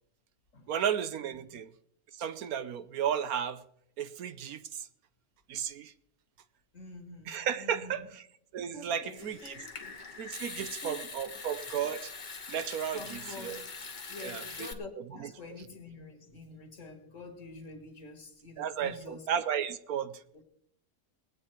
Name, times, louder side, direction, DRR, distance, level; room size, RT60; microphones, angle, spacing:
voice 1, 0.7-1.7 2.1-3.6 4.0-4.9 5.5-5.9 7.3-8.1 8.5-9.5 10.2-12.1 12.5-13.6 14.2-14.7 15.2-15.3 18.6-20.4, right 8 dB, 75° right, 1.2 m, -34 dB
voice 2, 1.2-1.6 6.7-8.1 8.6-10.0 10.6-11.4 12.9-19.3 20.3-20.4, left 2 dB, 55° left, 2.2 m, -48 dB
Water tap faucet / Sink (filling or washing) / Trickle dribble, 9.2-14.7, left 4 dB, 35° left, 1.1 m, -43 dB
21.0 x 8.7 x 4.5 m
omnidirectional pair, 1.6 m